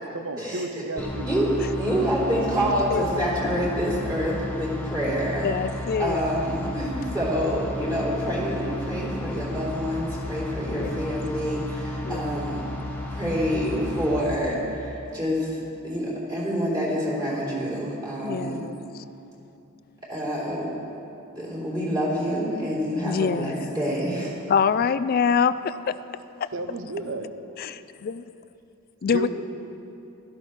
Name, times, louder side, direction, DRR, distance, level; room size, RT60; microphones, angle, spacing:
voice 1, 0.1-1.3 1.9-2.2 26.5-27.3 29.1-29.3, right 2 dB, 60° right, 7 dB, 0.8 m, -32 dB
sound 1, 1.0-14.3, left 1 dB, 10° left, 1.1 m, -33 dB
voice 2, 1.0-5.5 6.0-12.6 13.1-15.5 15.8-18.7 20.1-20.7 21.4-24.3 29.2-29.3, equal, 20° right, -8 dB, 3.4 m, -27 dB
voice 3, 2.9-3.3 5.4-6.2 10.7-11.0 12.0-12.4 18.2-18.8 23.0-23.7 24.5-25.9 27.6-27.7 29.0-29.3, left 6 dB, 45° left, 14 dB, 0.3 m, -25 dB
16.5 x 13.0 x 3.3 m, 2.8 s
head